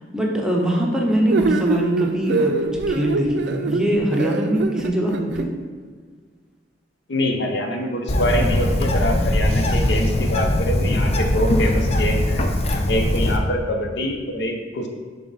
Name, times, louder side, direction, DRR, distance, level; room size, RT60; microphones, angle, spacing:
voice 1, 0.1-5.5, right 1 dB, 5° right, -1 dB, 0.7 m, -22 dB
sound 1, 1.3-5.5, right 3 dB, 65° right, 0.4 m, -23 dB
voice 2, 7.1-12.5 12.9-14.9, left 1 dB, 70° left, 3 dB, 0.7 m, -24 dB
Bird, 8.1-13.4, left 1 dB, 35° left, 0.5 m, -20 dB
6.8 x 3.6 x 4.0 m, 1.5 s
head